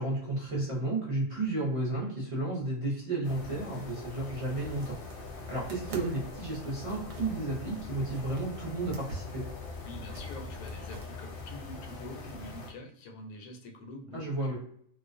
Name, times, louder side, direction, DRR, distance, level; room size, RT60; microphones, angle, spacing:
voice 1, 0.0-5.0 5.5-9.5 14.1-14.6, right 2 dB, 35° right, -5 dB, 0.5 m, -32 dB
sound 1, 3.2-12.7, left 4 dB, 55° left, 0.7 m, -43 dB
sound 2, 4.5-11.1, right 2 dB, 65° right, 0.8 m, -45 dB
voice 2, 9.8-14.6, left 2 dB, 85° left, 3 dB, 1.0 m, -45 dB
2.4 x 2.1 x 2.5 m, 0.67 s
omnidirectional pair, 1.4 m